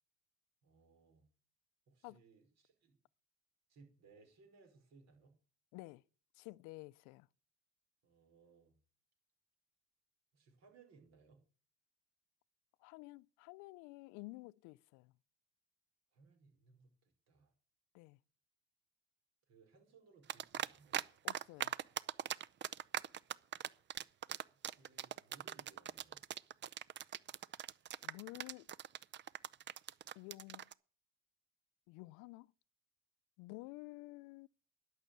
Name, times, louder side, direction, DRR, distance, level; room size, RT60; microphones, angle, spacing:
voice 1, 0.6-1.2 1.9-3.0 3.7-5.4 8.0-8.8 10.3-11.4 16.1-17.5 19.5-21.0 24.6-26.2, right 4 dB, 60° right, 5.4 m, -65 dB
voice 2, 5.7-6.0 6.4-7.3 12.8-15.1 17.9-18.2 21.2-21.7 28.0-28.7 30.2-30.7 31.9-32.5 33.4-34.5, left 23 dB, 85° left, 0.5 m, -51 dB
sound 1, 20.3-21.0 21.3-30.7, right 10 dB, 40° right, 0.5 m, -40 dB
11.5 x 6.5 x 9.5 m
cardioid pair, 95°, 30 cm